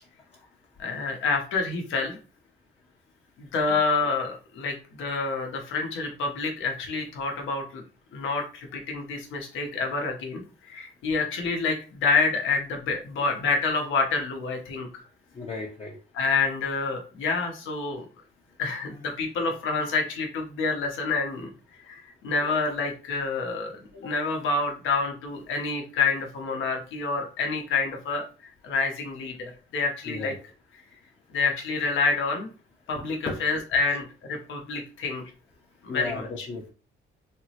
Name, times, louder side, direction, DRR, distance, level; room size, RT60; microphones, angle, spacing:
voice 1, 0.8-2.2 3.4-7.8 8.1-15.0 16.1-18.0 18.6-21.5 21.9-30.3 30.7-30.8 31.3-32.5 32.9-35.2 35.8-36.5, left 4 dB, 75° left, 3 dB, 0.8 m, -28 dB
voice 2, 15.3-16.0 30.1-30.4 33.3-33.4 35.9-36.7, left 3 dB, 30° left, -1 dB, 0.6 m, -34 dB
3.5 x 2.0 x 2.8 m, 0.36 s
cardioid pair, 90°, 20 cm